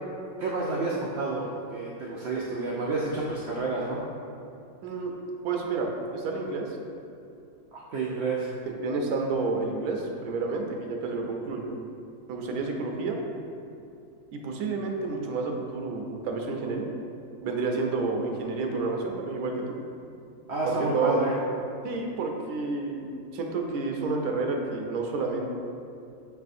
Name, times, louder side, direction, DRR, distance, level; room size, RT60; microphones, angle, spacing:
voice 1, 0.4-4.0 7.7-8.5 20.5-21.4, right 3 dB, 70° right, -4 dB, 0.6 m, -29 dB
voice 2, 4.8-5.1 5.4-6.8 8.7-11.7 12.3-13.2 14.3-16.9 17.4-19.8 20.7-21.2 21.8-23.0 23.3-25.6, right 3 dB, 85° right, 1 dB, 1.1 m, -30 dB
6.1 x 3.3 x 2.5 m, 2.5 s
omnidirectional pair, 1.6 m